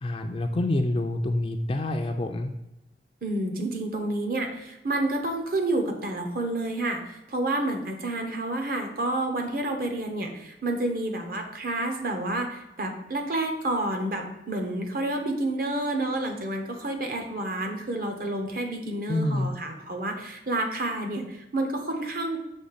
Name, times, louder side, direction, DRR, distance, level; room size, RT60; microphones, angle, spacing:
voice 1, 0.0-2.5 19.1-19.5, left 1 dB, 30° left, 4 dB, 0.3 m, -27 dB
voice 2, 3.2-7.0 7.3-22.4, right 2 dB, 55° right, 4 dB, 1.0 m, -29 dB
6.3 x 3.3 x 5.7 m, 0.95 s
head